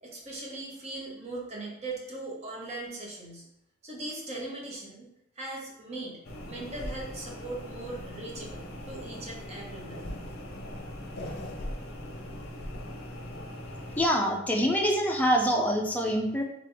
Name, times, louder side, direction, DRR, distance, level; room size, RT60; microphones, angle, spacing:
voice 1, 0.0-3.4 3.8-5.1 5.4-6.2 6.5-10.0, right 2 dB, 30° right, -2 dB, 0.9 m, -39 dB
sound 1, 6.2-14.1, left 1 dB, 50° left, 0.7 m, -40 dB
voice 2, 14.0-16.4, equal, 10° left, 0 dB, 0.4 m, -25 dB
3.7 x 3.3 x 3.4 m, 0.82 s
head